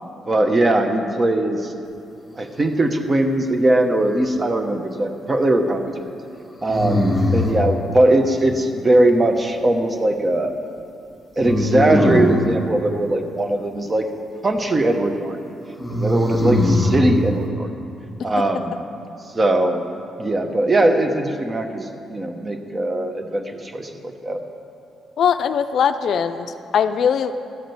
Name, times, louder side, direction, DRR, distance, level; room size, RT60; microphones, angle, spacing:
voice 1, 0.3-1.7 2.4-5.9 6.6-10.5 11.4-14.1 14.4-15.5 15.9-17.7 18.2-18.8 19.3-19.8 20.2-24.4, right 1 dB, 25° right, 6 dB, 0.9 m, -20 dB
sound 1, 3.9-4.6 6.7-7.6 11.4-12.4 15.8-17.0, left 1 dB, 10° left, 1.6 m, -20 dB
voice 2, 25.2-27.3, left 7 dB, 65° left, 10 dB, 0.4 m, -20 dB
12.5 x 5.0 x 7.8 m, 2.7 s
cardioid pair, 90°, 0 cm